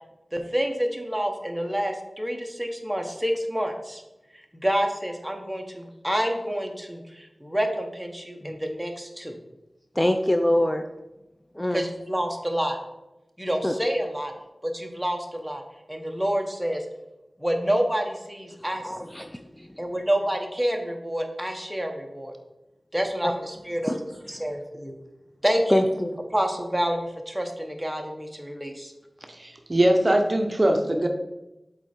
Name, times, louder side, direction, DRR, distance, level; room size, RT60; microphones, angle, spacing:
voice 1, 0.3-4.0 4.5-9.3 11.7-12.8 13.4-14.3 14.6-15.6 15.9-16.8 17.4-19.1 19.8-22.3 22.9-24.9 25.4-25.9 26.3-28.9, equal, 5° right, 1.0 m, -28 dB
voice 2, 10.0-10.8 11.6-11.8 13.6-13.7 18.8-19.3 23.2-23.4 23.9-24.0 25.7-26.2, left 1 dB, 15° left, 0.4 m, -23 dB
voice 3, 29.4-31.1, right 1 dB, 35° right, 0.7 m, -21 dB
8.0 x 3.8 x 4.3 m
wide cardioid pair, 75°, 0 cm